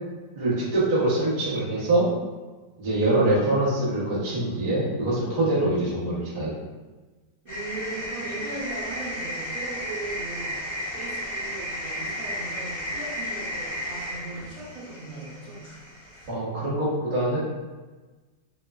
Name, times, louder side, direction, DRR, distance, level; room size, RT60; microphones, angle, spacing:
voice 1, 0.4-2.1 2.8-6.5 16.3-17.4, right 1 dB, 80° right, -8 dB, 0.3 m, -24 dB
voice 2, 7.4-10.6 10.9-15.7, right 3 dB, 60° right, -6 dB, 1.0 m, -38 dB
sound 1, 7.5-16.3, equal, 40° left, 1.1 m, -34 dB
2.9 x 2.2 x 2.2 m, 1.3 s
omnidirectional pair, 1.9 m